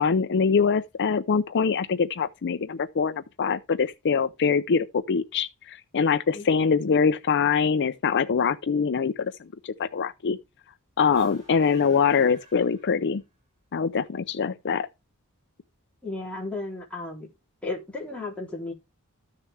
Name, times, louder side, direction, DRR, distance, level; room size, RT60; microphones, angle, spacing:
voice 1, 0.0-9.3 9.6-10.4 11.0-13.2 13.7-14.9, left 5 dB, 55° left, 0.5 m, -24 dB
sound 1, 11.1-13.3, right 1 dB, 30° right, 7.8 m, -51 dB
voice 2, 16.0-17.3 17.6-18.7, left 2 dB, 5° left, 3.3 m, -34 dB
13.5 x 6.7 x 3.3 m
head